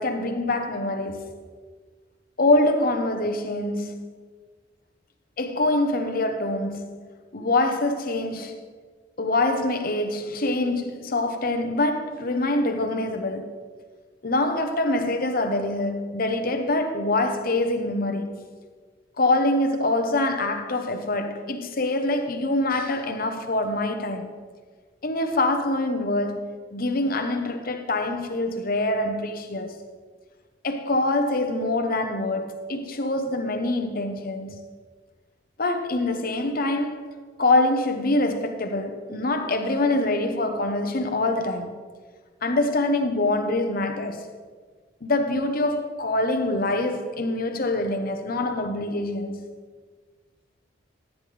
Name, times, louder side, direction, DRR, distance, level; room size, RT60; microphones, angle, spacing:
voice 1, 0.0-1.4 2.4-4.0 5.4-7.0 7.3-8.5 9.2-13.5 14.2-18.4 19.2-24.3 25.0-29.8 30.6-34.6 35.6-37.1 37.4-41.7 42.4-44.2 45.0-49.5, left 2 dB, 50° left, 1.0 m, -25 dB
14.0 x 9.6 x 3.4 m
head